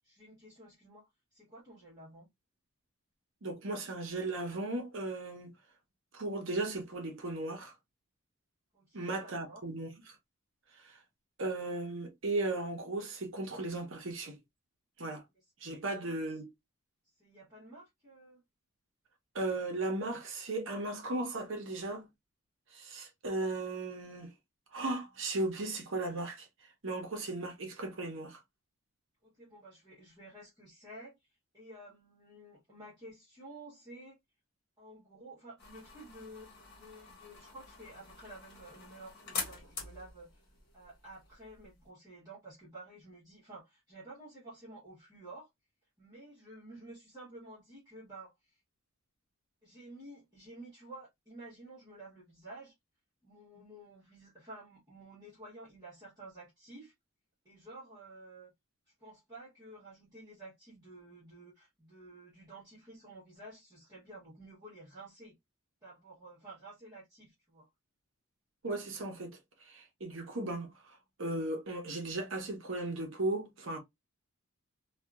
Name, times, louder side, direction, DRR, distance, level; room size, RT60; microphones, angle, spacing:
voice 1, 0.1-2.3 8.7-9.6 15.3-15.4 15.9-16.2 17.1-18.4 29.2-31.3 31.5-34.2 34.8-40.4 40.7-45.5 46.0-48.6 49.6-52.7 53.2-56.9 57.4-58.5 59.0-65.4 65.8-67.7, right 2 dB, 20° right, 1.2 m, -52 dB
voice 2, 3.4-5.5 6.1-7.7 8.9-9.9 10.8-11.0 11.4-14.4 15.0-15.2 15.6-16.5 19.3-22.1 22.7-24.3 24.7-26.5 26.8-28.4 68.6-73.8, right 2 dB, 60° right, 0.8 m, -36 dB
sound 1, 35.6-41.9, left 4 dB, 50° left, 1.2 m, -46 dB
2.7 x 2.4 x 2.3 m
head